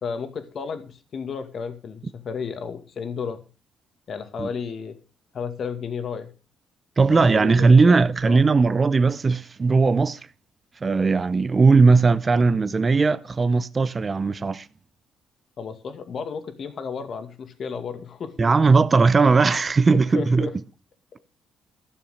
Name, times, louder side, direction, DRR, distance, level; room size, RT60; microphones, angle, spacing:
voice 1, 0.0-3.4 4.1-5.0 5.3-6.3 7.1-8.4 15.6-18.5 19.9-20.5, left 6 dB, 55° left, 2.1 m, -33 dB
voice 2, 7.0-10.3 10.8-14.7 18.4-20.5, right 4 dB, 30° right, 0.7 m, -18 dB
13.5 x 7.0 x 6.5 m
cardioid pair, 90°, 0 cm